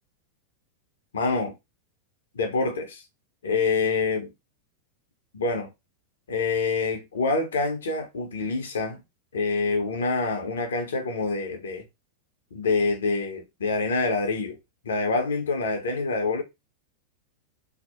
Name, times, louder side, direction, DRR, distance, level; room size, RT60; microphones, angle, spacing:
voice 1, 1.1-1.5 2.3-3.0 3.4-4.3 5.3-5.7 6.3-9.0 9.3-11.9 12.5-14.6 14.8-16.4, left 3 dB, 65° left, 0.6 m, -26 dB
2.6 x 2.0 x 2.3 m
figure-of-eight pair, 90°, 0 cm